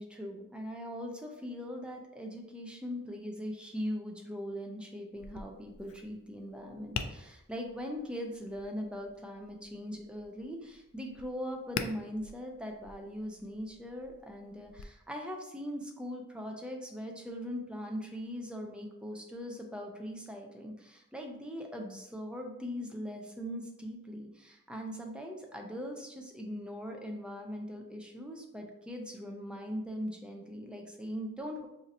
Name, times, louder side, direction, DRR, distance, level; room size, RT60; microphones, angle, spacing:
voice 1, 0.0-31.7, equal, 5° right, 1 dB, 0.4 m, -40 dB
Tap, 5.1-14.8, left 6 dB, 75° left, 0.3 m, -45 dB
2.7 x 2.5 x 4.0 m, 0.85 s
head